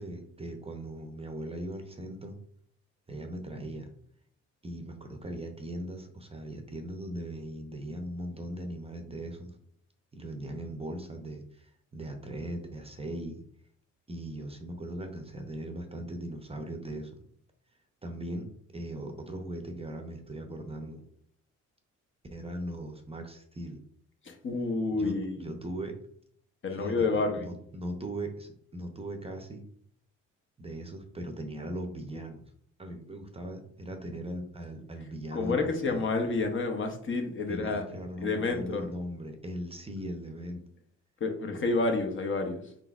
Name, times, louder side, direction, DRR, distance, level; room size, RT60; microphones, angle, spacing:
voice 1, 0.0-2.4 3.1-3.9 4.6-9.6 10.1-13.4 14.1-17.1 18.0-21.0 22.3-23.8 24.9-26.0 26.8-29.6 30.6-32.4 32.8-36.1 37.5-40.6, right 1 dB, 20° right, 4 dB, 0.6 m, -39 dB
voice 2, 24.2-25.5 26.6-27.5 35.3-37.8 38.2-38.8 41.2-42.6, left 3 dB, 40° left, 4 dB, 0.8 m, -29 dB
3.8 x 3.8 x 2.4 m, 0.63 s
cardioid pair, 90°, 30 cm